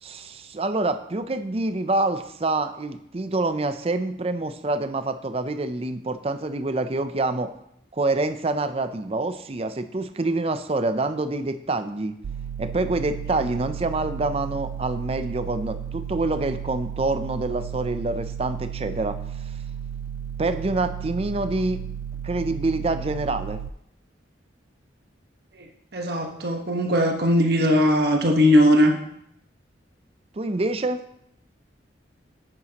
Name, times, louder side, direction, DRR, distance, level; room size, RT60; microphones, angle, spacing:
voice 1, 0.0-7.5 7.9-12.1 12.6-19.2 20.4-21.8 22.2-23.6 30.4-31.0, right 2 dB, 35° right, 10 dB, 0.5 m, -26 dB
sound 1, 12.2-23.7, right 9 dB, 90° right, 0.3 m, -34 dB
voice 2, 25.9-28.9, equal, 60° right, 2 dB, 1.3 m, -19 dB
9.8 x 9.4 x 2.9 m, 0.75 s
head